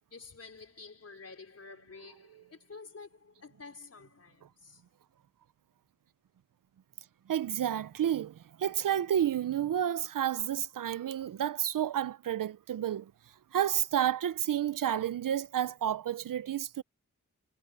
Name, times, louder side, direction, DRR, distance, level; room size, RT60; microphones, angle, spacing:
voice 1, 0.1-4.8, left 4 dB, 50° left, 4.8 m, -50 dB
voice 2, 7.3-13.1 13.5-16.8, right 10 dB, 85° right, 0.6 m, -30 dB
wide cardioid pair, 130°, 32 cm